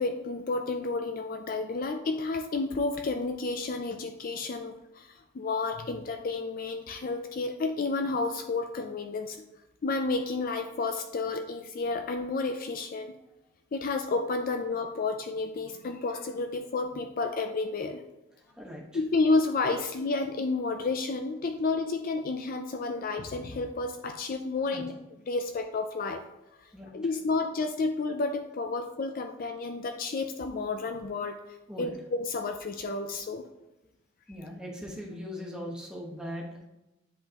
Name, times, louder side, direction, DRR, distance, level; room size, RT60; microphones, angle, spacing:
voice 1, 0.0-9.4 9.8-13.1 13.7-18.0 18.9-24.9 25.3-26.2 26.9-31.4 31.8-33.4, left 3 dB, 45° left, 6 dB, 0.4 m, -31 dB
voice 2, 18.5-19.0 24.7-24.8 26.7-27.2 31.7-32.0 33.2-33.3 34.3-36.6, equal, 5° right, -2 dB, 1.2 m, -40 dB
10.0 x 3.8 x 2.9 m, 0.96 s
head